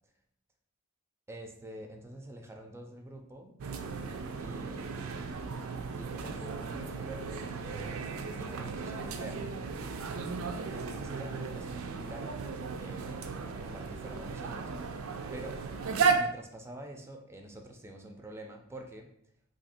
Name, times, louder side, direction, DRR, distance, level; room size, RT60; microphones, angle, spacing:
voice 1, 1.3-3.6 4.4-5.6 6.0-9.4 10.7-12.4 12.8-14.7 15.3-15.8 16.2-19.1, right 1 dB, 10° right, 4 dB, 0.3 m, -47 dB
sound 1, 3.6-16.2, right 5 dB, 85° right, 0.4 m, -35 dB
2.8 x 2.5 x 4.1 m, 0.70 s
head